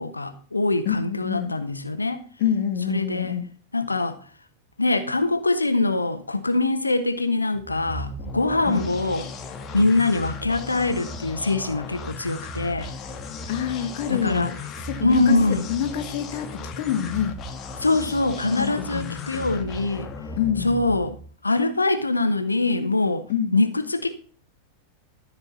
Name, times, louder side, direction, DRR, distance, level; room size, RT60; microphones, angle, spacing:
voice 1, 0.0-2.2 2.9-3.3 3.7-4.2 4.8-9.3 9.7-12.9 14.1-14.5 15.0-15.7 17.8-20.1 20.6-21.2 21.4-23.3 23.5-24.1, left 2 dB, 80° left, 1.2 m, -23 dB
voice 2, 0.9-1.5 2.4-3.5 8.6-8.9 13.5-14.5 14.8-15.4 15.7-17.4 18.6-19.5 20.4-20.7 23.3-23.6, left 9 dB, 50° left, 1.6 m, -27 dB
sound 1, 7.5-21.3, left 2 dB, 30° left, 1.4 m, -36 dB
13.5 x 4.9 x 7.0 m
figure-of-eight pair, 90°, 0 cm